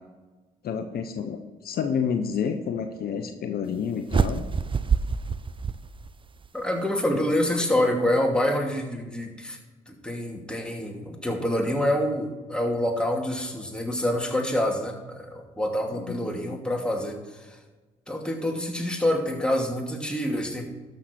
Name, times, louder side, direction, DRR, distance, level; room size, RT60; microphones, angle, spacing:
voice 1, 0.6-4.4 15.9-16.6, left 7 dB, 60° left, 7 dB, 0.9 m, -30 dB
sound 1, 4.1-6.5, right 5 dB, 30° right, 0.6 m, -26 dB
voice 2, 6.5-9.6 9.9-17.6 18.1-20.6, left 1 dB, 5° left, 1 dB, 2.4 m, -27 dB
12.5 x 6.6 x 4.4 m, 1.3 s
hypercardioid pair, 45°, 18 cm